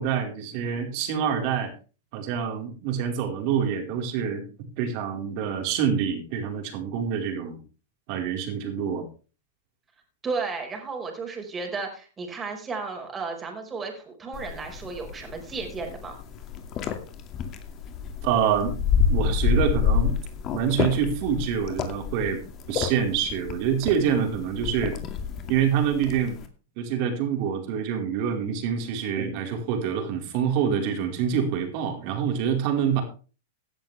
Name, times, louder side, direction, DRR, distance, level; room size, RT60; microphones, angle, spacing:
voice 1, 0.0-1.7 2.1-7.6 8.1-9.1 18.2-18.7 19.1-20.2 20.5-22.4 22.7-25.0 25.5-26.4 26.8-33.0, right 8 dB, 50° right, 3 dB, 4.5 m, -26 dB
voice 2, 10.2-16.2, right 4 dB, 20° right, 3 dB, 5.1 m, -33 dB
sound 1, 14.3-26.5, left 7 dB, 35° left, 2.3 m, -29 dB
17.0 x 10.5 x 3.5 m, 0.36 s
hypercardioid pair, 125°, 0 cm